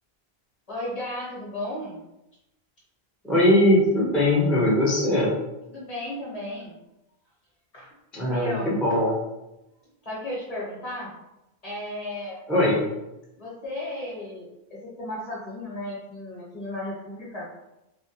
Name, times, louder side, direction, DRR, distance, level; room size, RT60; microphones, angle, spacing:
voice 1, 0.7-2.0 5.7-6.7 7.7-7.9 8.2-8.8 10.0-11.1 11.6-12.4 13.4-17.5, left 1 dB, 40° left, -6 dB, 0.8 m, -34 dB
voice 2, 3.2-5.3 8.1-9.2 12.5-12.9, left 1 dB, ahead, -7 dB, 0.4 m, -20 dB
2.4 x 2.1 x 2.7 m, 0.94 s
omnidirectional pair, 1.1 m